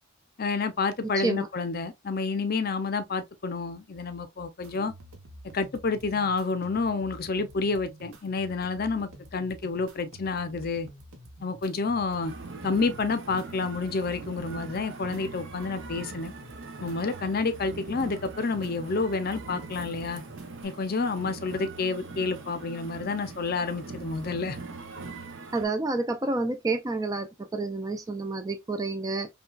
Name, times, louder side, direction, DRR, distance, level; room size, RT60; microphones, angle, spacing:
voice 1, 0.4-4.9 5.5-10.9 11.4-12.3 12.6-16.3 16.8-20.2 20.6-24.6, left 4 dB, 45° left, 0.5 m, -29 dB
voice 2, 1.1-1.5 25.5-29.3, right 3 dB, 15° right, 0.3 m, -29 dB
sound 1, 4.6-20.6, right 1 dB, 75° right, 1.0 m, -49 dB
sound 2, 12.2-25.7, right 3 dB, 55° right, 0.7 m, -42 dB
5.4 x 2.3 x 2.3 m
head